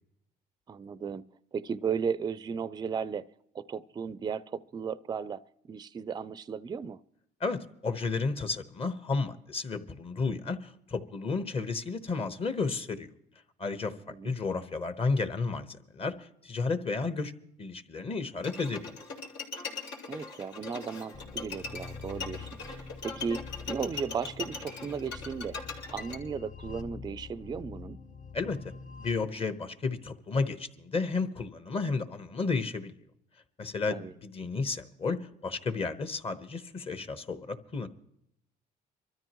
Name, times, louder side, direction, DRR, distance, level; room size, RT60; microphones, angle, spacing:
voice 1, 0.7-1.3 1.5-3.2 3.5-5.4 5.7-7.0 14.1-14.3 20.1-23.4 23.7-25.6 25.9-28.0 33.9-34.1, right 6 dB, 25° right, 17 dB, 0.4 m, -35 dB
voice 2, 7.4-13.1 13.6-17.3 17.6-19.0 28.3-28.6 29.0-32.9 33.6-37.9, left 4 dB, 35° left, 11 dB, 1.1 m, -32 dB
Bowed string instrument, 18.4-26.2, left 5 dB, 85° left, 3.9 m, -40 dB
sound 1, 21.1-29.1, left 5 dB, 55° left, 1.9 m, -45 dB
24.5 x 13.5 x 3.0 m, 0.75 s
cardioid pair, 110°, 17 cm